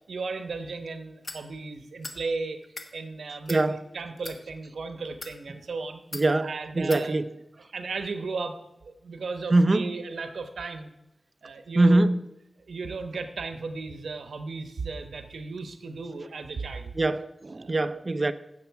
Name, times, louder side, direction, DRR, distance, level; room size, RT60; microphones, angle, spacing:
voice 1, 0.1-2.6 2.9-7.1 7.7-10.9 11.4-12.1 12.7-16.9 17.5-17.8, right 4 dB, 85° right, 0.9 m, -35 dB
sound 1, 1.2-1.4 2.0-2.2 2.6-2.9 3.5-3.6 4.2-4.4 5.1-5.4 6.1-6.3 6.9-7.0, left 2 dB, 40° left, 1.3 m, -39 dB
voice 2, 6.1-7.3 9.5-9.9 11.8-12.2 17.0-18.3, right 2 dB, 35° right, 0.6 m, -23 dB
16.0 x 6.9 x 4.6 m
wide cardioid pair, 125°, 0 cm